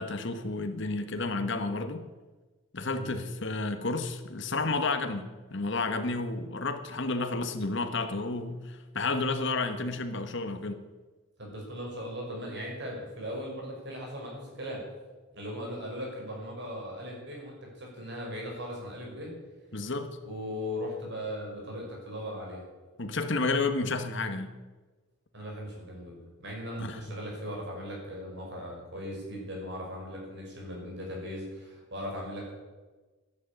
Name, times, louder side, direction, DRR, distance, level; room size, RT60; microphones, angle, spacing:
voice 1, 0.0-2.1 2.7-10.8 19.7-20.2 23.0-24.5 26.8-27.0, left 3 dB, 60° left, 8 dB, 1.4 m, -31 dB
voice 2, 11.4-14.8 15.3-19.3 20.2-22.6 25.3-32.5, equal, 55° right, -1 dB, 6.5 m, -38 dB
12.5 x 11.0 x 9.1 m, 1.3 s
head